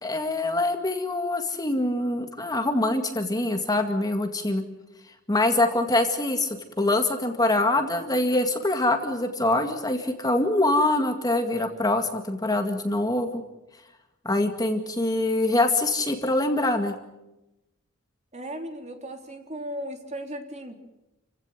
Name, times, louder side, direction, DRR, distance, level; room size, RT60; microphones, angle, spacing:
voice 1, 0.0-4.6 5.3-13.4 14.2-17.0, left 2 dB, 20° left, 6 dB, 2.0 m, -24 dB
voice 2, 18.3-20.7, equal, 35° right, 5 dB, 3.6 m, -36 dB
29.5 x 16.5 x 9.2 m, 0.96 s
head